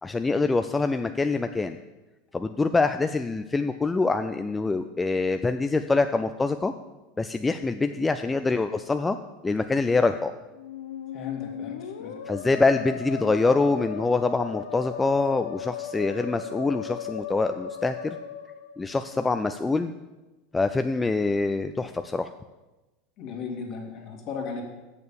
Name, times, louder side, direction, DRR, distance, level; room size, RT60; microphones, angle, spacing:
voice 1, 0.0-1.8 2.3-6.7 7.2-9.2 9.4-10.3 12.3-18.2 18.8-19.9 20.5-22.3, left 3 dB, 15° left, 8 dB, 0.4 m, -25 dB
Musical instrument, 10.5-19.3, left 8 dB, 80° left, 0.8 m, -37 dB
voice 2, 11.1-12.2 23.2-24.6, left 5 dB, 50° left, 2 dB, 2.1 m, -36 dB
6.7 x 6.6 x 7.0 m, 1.1 s
hypercardioid pair, 95°, 0 cm